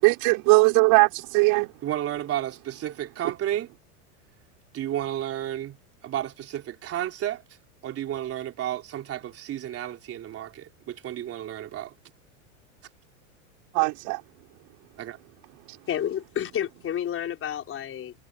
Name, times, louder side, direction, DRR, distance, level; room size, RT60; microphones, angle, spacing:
voice 1, 0.0-1.7 13.7-14.2, right 27 dB, 55° right, 6.1 m, -19 dB
voice 2, 1.8-3.7 4.7-5.8 6.0-7.4 7.8-11.9 15.0-15.2, right 12 dB, 35° right, 3.6 m, -32 dB
voice 3, 15.9-18.1, left 10 dB, 30° left, 6.0 m, -30 dB
hypercardioid pair, 115°, 40 cm